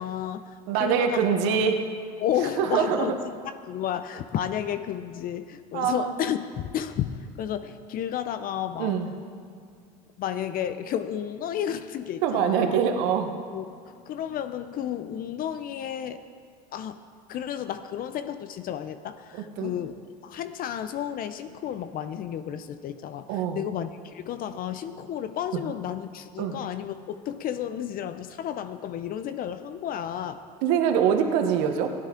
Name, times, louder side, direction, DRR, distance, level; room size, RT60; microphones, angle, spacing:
voice 1, 0.0-1.6 2.2-9.0 10.2-12.8 13.5-16.2 16.7-17.0 17.3-20.0 20.2-30.4, left 10 dB, 45° left, 11 dB, 0.6 m, -32 dB
voice 2, 0.7-1.9 2.6-3.1 5.7-6.1 8.8-9.1 12.2-13.4 19.3-19.7 23.3-23.7 26.4-26.6 30.6-31.9, right 7 dB, 65° right, 5 dB, 1.1 m, -24 dB
16.0 x 10.5 x 3.8 m, 2.2 s
hypercardioid pair, 80°, 20 cm